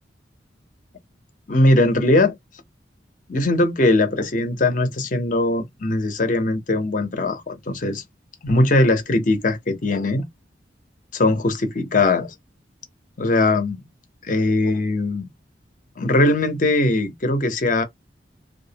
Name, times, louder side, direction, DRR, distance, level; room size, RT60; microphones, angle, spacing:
voice 1, 1.5-2.3 3.3-8.0 8.4-10.3 11.1-12.3 13.2-13.8 14.2-15.3 16.0-17.8, left 2 dB, 45° left, 0.6 m, -20 dB
2.3 x 2.0 x 2.7 m
head